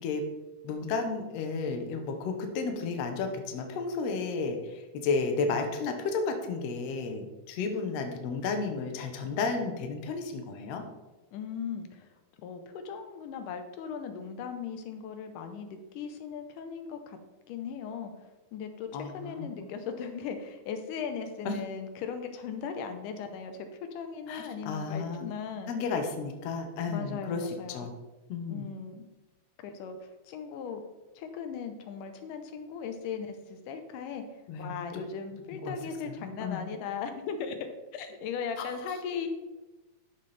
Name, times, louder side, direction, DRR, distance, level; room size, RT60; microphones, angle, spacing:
voice 1, 0.6-10.8 18.9-19.5 21.4-21.6 24.3-25.2 25.7-27.9 28.3-28.6 34.5-35.0 35.5-35.7 36.2-36.6, left 4 dB, 70° left, 5 dB, 1.7 m, -32 dB
voice 2, 11.3-12.1 12.4-17.2 17.5-18.1 18.5-23.7 23.9-25.7 26.9-27.9 28.5-29.0 29.6-30.8 31.2-34.2 34.6-39.3, left 6 dB, 90° left, 7 dB, 2.3 m, -38 dB
12.5 x 4.2 x 3.3 m, 1.1 s
omnidirectional pair, 3.6 m